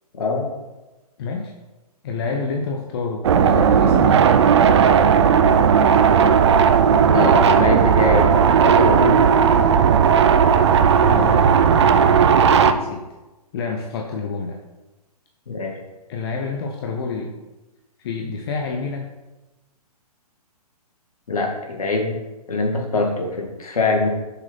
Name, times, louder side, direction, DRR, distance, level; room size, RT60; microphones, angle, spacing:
voice 1, 0.2-0.5 7.1-8.3 8.6-9.3 15.5-15.8 21.3-22.2 22.5-24.1, left 3 dB, 65° left, 1 dB, 1.9 m, -23 dB
voice 2, 1.2-1.5 2.0-4.3 11.0-11.7 12.5-13.0 13.5-14.6 16.1-17.3 18.0-19.1, left 4 dB, 40° left, 1 dB, 0.8 m, -28 dB
sound 1, 3.2-12.7, right 7 dB, 45° right, 0.6 m, -15 dB
6.7 x 4.9 x 5.8 m, 1.1 s
figure-of-eight pair, 125°, 20 cm